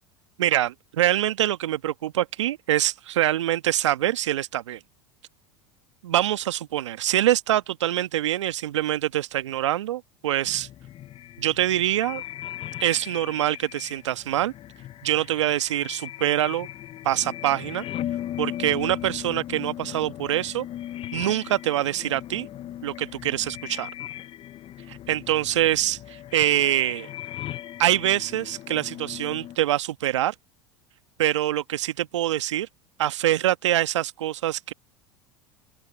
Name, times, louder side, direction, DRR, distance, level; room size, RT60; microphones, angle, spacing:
voice 1, 0.4-4.8 6.0-10.7 11.4-12.2 12.8-14.5 15.0-16.7 17.0-17.8 18.4-20.6 21.1-22.5 22.8-23.9 24.9-27.1 27.8-30.3 31.2-32.7 33.0-34.7, right 13 dB, 80° right, 1.3 m, -24 dB
sound 1, 10.4-29.6, left 12 dB, 40° left, 0.6 m, -38 dB
open air
hypercardioid pair, 80°, 15 cm